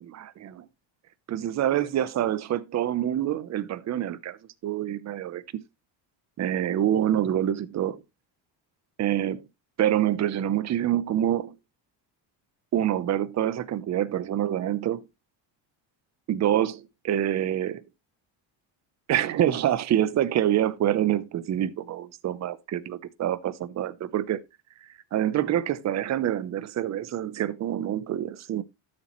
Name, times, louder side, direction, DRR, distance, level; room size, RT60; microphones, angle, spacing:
voice 1, 0.0-0.6 1.3-4.4 4.6-5.4 6.4-8.0 9.0-9.5 9.8-11.5 12.7-15.0 16.3-17.8 19.1-24.4 25.1-28.6, right 11 dB, 35° right, 0.7 m, -26 dB
12.5 x 7.4 x 3.0 m
cardioid pair, 155°, 47 cm